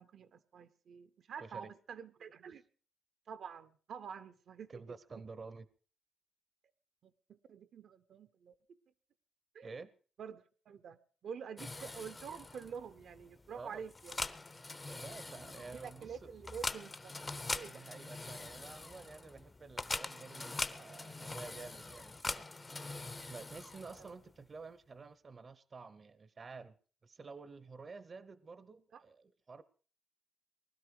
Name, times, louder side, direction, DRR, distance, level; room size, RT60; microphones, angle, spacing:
voice 1, 0.0-2.6 3.3-5.2 7.0-8.8 9.5-9.7 10.2-14.2 15.7-17.2 17.5-17.7 24.0-24.1 28.9-29.0, right 7 dB, 70° right, 0.8 m, -48 dB
voice 2, 1.4-1.7 4.7-5.7 9.6-9.9 13.5-13.8 14.9-16.2 17.6-22.5 23.3-26.7 27.0-29.6, right 4 dB, 35° right, 0.7 m, -50 dB
sound 1, 11.6-24.3, left 3 dB, 25° left, 0.7 m, -43 dB
20.0 x 12.5 x 4.8 m
cardioid pair, 125°, 0 cm